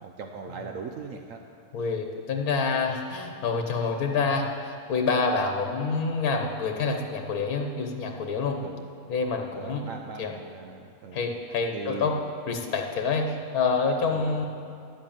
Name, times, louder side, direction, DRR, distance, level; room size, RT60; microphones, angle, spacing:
voice 1, 0.0-1.4 8.6-8.8 9.5-11.2 11.7-12.2 14.1-14.3, right 5 dB, 65° right, 3 dB, 1.0 m, -39 dB
voice 2, 1.7-8.6 9.1-9.8 10.2-10.3 11.1-12.2 12.5-14.5, left 4 dB, 80° left, 3 dB, 1.5 m, -27 dB
11.0 x 7.7 x 8.8 m, 2.4 s
omnidirectional pair, 1.5 m